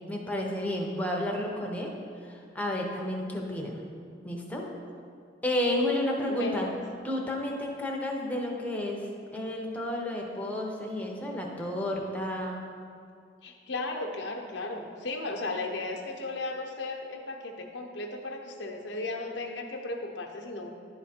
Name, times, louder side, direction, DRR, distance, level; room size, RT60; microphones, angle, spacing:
voice 1, 0.1-1.9 2.2-3.8 4.2-4.7 5.4-6.7 7.0-12.6, left 1 dB, 10° left, -1 dB, 0.8 m, -31 dB
voice 2, 6.3-6.7 13.4-20.8, left 2 dB, 80° left, 2 dB, 0.8 m, -35 dB
11.0 x 3.7 x 4.3 m, 2.3 s
head